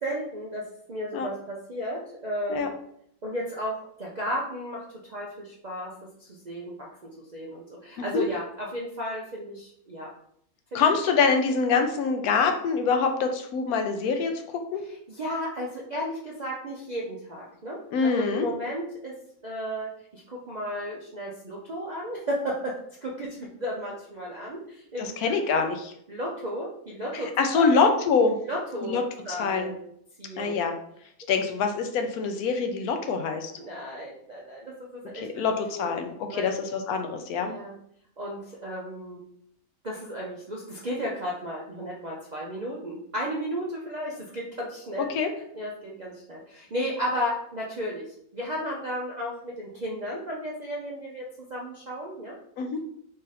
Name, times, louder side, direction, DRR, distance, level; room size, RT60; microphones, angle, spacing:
voice 1, 0.0-2.7 3.2-4.8 5.1-5.9 6.2-10.1 10.7-10.8 14.9-19.2 19.4-22.7 23.0-25.7 26.1-27.8 28.5-29.0 29.2-29.7 30.2-30.6 33.6-35.9 36.3-36.6 37.4-37.8 38.2-39.2 39.8-45.1 45.5-48.0 48.3-51.2 51.5-52.3, equal, 55° right, -4 dB, 0.4 m, -34 dB
voice 2, 10.7-14.8 17.9-18.5 25.0-25.9 27.1-28.4 28.8-29.0 29.3-29.7 30.4-30.7 31.3-33.5 35.1-37.5 45.0-45.3 52.6-52.8, left 5 dB, 80° left, 5 dB, 1.1 m, -25 dB
4.0 x 2.5 x 4.0 m, 0.70 s
omnidirectional pair, 1.6 m